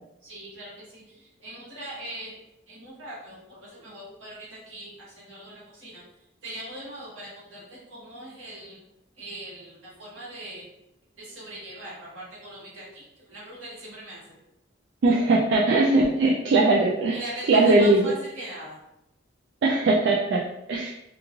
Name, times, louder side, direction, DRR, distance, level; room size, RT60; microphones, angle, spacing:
voice 1, 0.2-2.3 2.7-6.0 6.4-8.8 9.2-10.7 11.2-14.4 16.7-16.8 17.1-18.7, right 1 dB, 90° right, -8 dB, 1.4 m, -41 dB
voice 2, 15.0-17.2 17.5-18.1 19.6-20.9, right 2 dB, 60° right, -3 dB, 0.3 m, -20 dB
3.0 x 2.4 x 2.4 m, 0.85 s
head